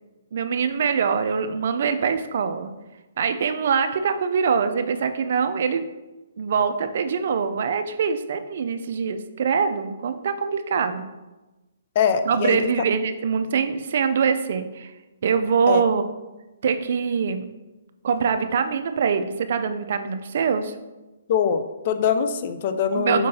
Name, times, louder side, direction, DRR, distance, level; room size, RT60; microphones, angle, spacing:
voice 1, 0.3-2.7 3.2-5.8 6.4-11.0 12.3-14.9 15.2-16.0 16.6-17.5 18.0-20.7 22.9-23.3, right 6 dB, 60° right, 9 dB, 0.4 m, -23 dB
voice 2, 12.0-12.7 15.7-15.8 21.3-23.3, left 7 dB, 45° left, 9 dB, 0.4 m, -23 dB
5.2 x 3.7 x 2.7 m, 1.1 s
hypercardioid pair, 145°, 0 cm